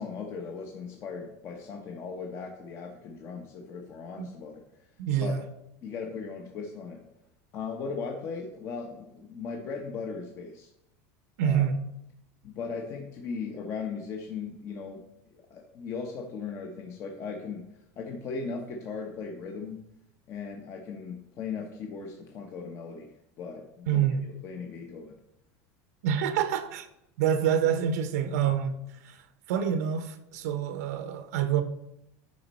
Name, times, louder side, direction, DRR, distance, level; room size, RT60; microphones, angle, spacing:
voice 1, 0.0-4.9 5.2-5.4 5.8-7.0 7.5-10.7 11.4-11.7 12.4-15.0 15.3-19.8 20.3-23.1 23.4-24.1 24.4-25.2, left 5 dB, 35° left, 0.8 m, -38 dB
voice 2, 5.0-5.4 11.4-11.8 23.9-24.2 26.0-26.9 27.2-28.8 29.0-29.2 29.5-31.6, right 8 dB, 85° right, 0.9 m, -27 dB
9.5 x 5.2 x 4.2 m
supercardioid pair, 160°, 8 cm